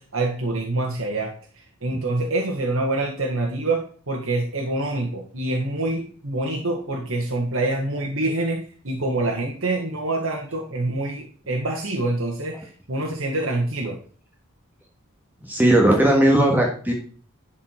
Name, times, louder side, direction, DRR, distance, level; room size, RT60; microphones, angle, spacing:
voice 1, 0.0-14.0, right 2 dB, 65° right, 0 dB, 1.6 m, -26 dB
voice 2, 15.4-16.9, right 1 dB, 10° right, 0 dB, 1.6 m, -17 dB
11.5 x 4.9 x 4.6 m, 0.44 s
head